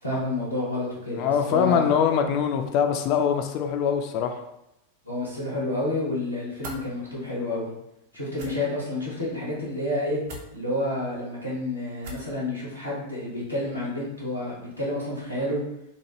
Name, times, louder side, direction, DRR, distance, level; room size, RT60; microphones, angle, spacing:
voice 1, 0.0-1.9 5.0-7.7 8.1-10.2 10.5-15.6, left 1 dB, 90° right, -7 dB, 1.1 m, -29 dB
voice 2, 1.1-4.4, left 7 dB, 40° left, 5 dB, 0.3 m, -23 dB
sound 1, 6.6-6.8 8.3-8.5 10.2-10.5 12.0-12.3, right 2 dB, 55° right, 0.6 m, -39 dB
2.9 x 2.2 x 3.0 m, 0.85 s
figure-of-eight pair, 90°, 0 cm